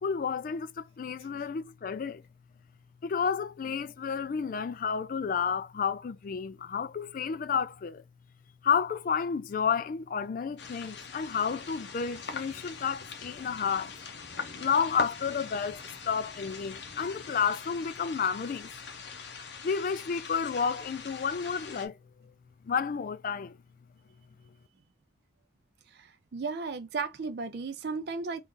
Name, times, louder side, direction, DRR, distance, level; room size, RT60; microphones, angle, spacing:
voice 1, 0.0-2.2 3.0-8.0 8.6-14.0 14.6-18.7 19.6-22.0 22.6-23.6, left 6 dB, 45° left, 0.3 m, -31 dB
sound 1, 10.6-21.9, left 5 dB, 60° left, 0.8 m, -42 dB
voice 2, 25.9-28.4, right 4 dB, 55° right, 0.4 m, -35 dB
3.7 x 2.4 x 3.7 m
head